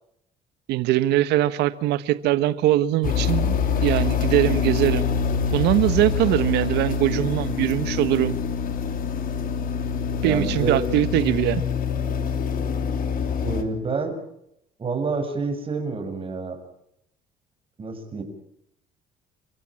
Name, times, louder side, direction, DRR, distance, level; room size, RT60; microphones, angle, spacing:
voice 1, 0.7-5.1 5.5-8.4 10.2-11.6, right 14 dB, 85° right, 14 dB, 1.5 m, -22 dB
sound 1, 3.0-13.6, left 6 dB, 55° left, 3.4 m, -25 dB
voice 2, 10.2-10.8 13.4-14.1 14.8-16.6 17.8-18.2, right 4 dB, 30° right, 5 dB, 6.9 m, -28 dB
29.5 x 15.5 x 8.6 m, 0.78 s
cardioid pair, 110°, 17 cm